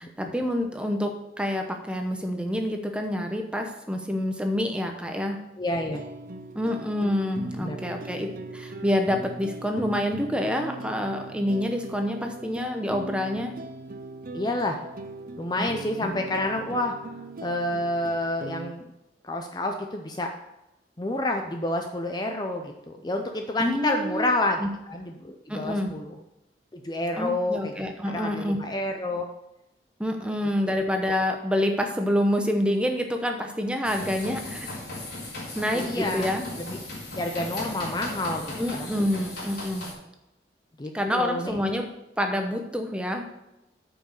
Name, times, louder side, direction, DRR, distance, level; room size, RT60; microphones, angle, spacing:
voice 1, 0.0-5.4 6.5-13.5 15.6-15.7 16.0-16.1 23.6-24.3 24.6-24.7 25.5-25.9 27.2-28.6 30.0-34.7 35.5-36.5 38.6-39.9 40.9-41.9 42.2-43.3, left 1 dB, 5° right, 4 dB, 0.9 m, -27 dB
voice 2, 5.6-6.0 7.6-7.8 14.3-14.8 15.4-16.9 17.4-18.9 19.2-20.3 21.0-24.6 24.9-26.2 26.7-27.7 28.0-29.3 30.7-30.8 35.7-36.3 36.6-36.8 37.1-38.9 40.8-41.6, left 1 dB, 25° left, 3 dB, 0.6 m, -29 dB
sound 1, 5.7-18.7, right 2 dB, 50° right, 0.6 m, -40 dB
sound 2, 33.8-39.9, left 2 dB, 60° left, 3.8 m, -37 dB
8.7 x 5.3 x 6.4 m, 0.90 s
head